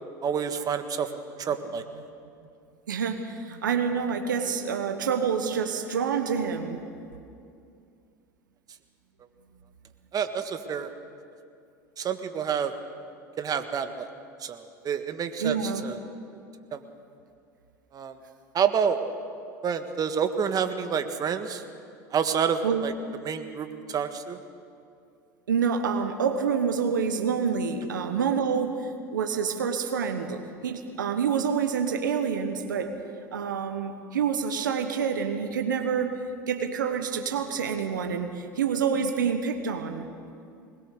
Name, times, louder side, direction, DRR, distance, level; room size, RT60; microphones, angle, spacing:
voice 1, 0.2-1.1 1.4-2.1 10.1-10.9 12.0-12.7 13.4-14.1 14.4-15.6 15.8-16.0 16.7-16.8 17.9-18.2 18.5-19.0 19.6-21.6 22.1-22.9 23.2-24.4, right 7 dB, 40° right, 7 dB, 1.6 m, -28 dB
voice 2, 2.9-6.8 15.4-15.8 22.6-22.9 25.5-32.9 33.3-36.2 36.5-40.1, right 6 dB, 85° right, 6 dB, 1.4 m, -27 dB
21.5 x 20.5 x 6.8 m, 2.4 s
hypercardioid pair, 80°, 10 cm